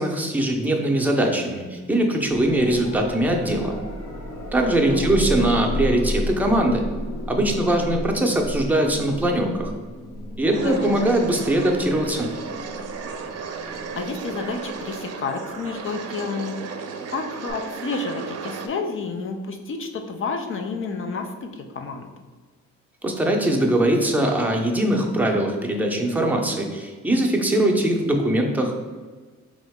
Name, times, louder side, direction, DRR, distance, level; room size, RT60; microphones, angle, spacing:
voice 1, 0.0-3.7 4.5-6.8 7.3-9.7 10.4-12.3 23.0-28.7, right 1 dB, 5° right, 1 dB, 0.7 m, -21 dB
sound 1, 2.3-15.1 17.5-17.6, left 1 dB, 60° left, 1.0 m, -33 dB
voice 2, 4.9-5.6 10.6-11.1 13.9-16.6 17.1-22.1, left 4 dB, 45° left, 4 dB, 0.5 m, -30 dB
sound 2, 10.5-18.7, right 5 dB, 55° right, 0.6 m, -34 dB
3.7 x 3.1 x 3.6 m, 1.4 s
cardioid pair, 90°, 30 cm